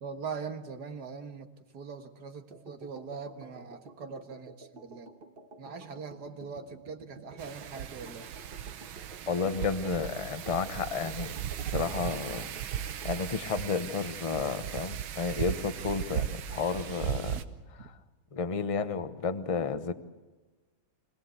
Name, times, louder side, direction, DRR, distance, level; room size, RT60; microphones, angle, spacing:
voice 1, 0.0-1.5 1.7-5.1 5.6-8.3, right 5 dB, 55° right, 7 dB, 1.9 m, -41 dB
sound 1, 2.5-13.3, right 3 dB, 30° right, 1.4 m, -51 dB
Wind, 7.4-17.4, right 10 dB, 80° right, 1.8 m, -37 dB
voice 2, 9.3-11.4 11.7-12.5 13.0-17.4 18.3-19.9, left 5 dB, 35° left, 10 dB, 0.5 m, -32 dB
25.0 x 17.5 x 8.1 m, 1.2 s
omnidirectional pair, 2.2 m